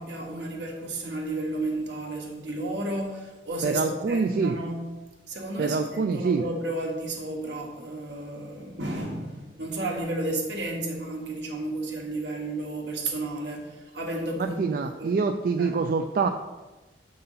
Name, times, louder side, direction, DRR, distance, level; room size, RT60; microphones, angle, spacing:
voice 1, 0.0-4.9 5.3-15.2 15.6-15.8, right 2 dB, 75° right, 1 dB, 1.4 m, -32 dB
voice 2, 3.6-4.6 5.6-6.4 14.4-16.3, right 4 dB, 55° right, 6 dB, 0.3 m, -25 dB
6.5 x 3.9 x 5.6 m, 1.2 s
head